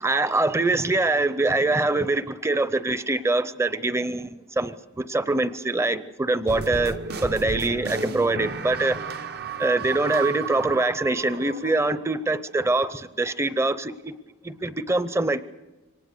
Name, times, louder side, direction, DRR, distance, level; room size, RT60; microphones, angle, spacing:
voice 1, 0.0-9.0 9.6-14.1 14.4-15.4, right 2 dB, 15° right, 0.6 m, -24 dB
sound 1, 6.5-12.1, right 4 dB, 50° right, 0.8 m, -33 dB
24.5 x 18.5 x 6.7 m
head